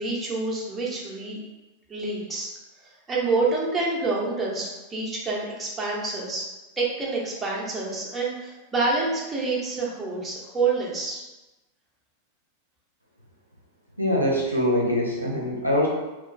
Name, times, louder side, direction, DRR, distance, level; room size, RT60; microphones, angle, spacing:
voice 1, 0.0-1.4 1.9-2.5 2.8-6.5 6.8-11.2, right 3 dB, 15° right, -5 dB, 0.7 m, -27 dB
voice 2, 14.0-15.9, left 1 dB, 90° right, -4 dB, 0.5 m, -23 dB
2.9 x 2.2 x 2.6 m, 1.1 s
figure-of-eight pair, 90°, 0 cm